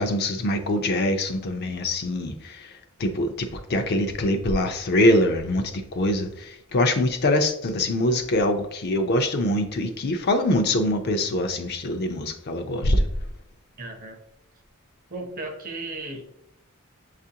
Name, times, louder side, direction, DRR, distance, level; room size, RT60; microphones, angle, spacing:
voice 1, 0.0-2.7 3.0-13.1, left 1 dB, 45° left, 0.4 m, -24 dB
voice 2, 13.8-14.2 15.1-16.3, right 2 dB, 40° right, 0.7 m, -35 dB
7.3 x 2.4 x 2.7 m
head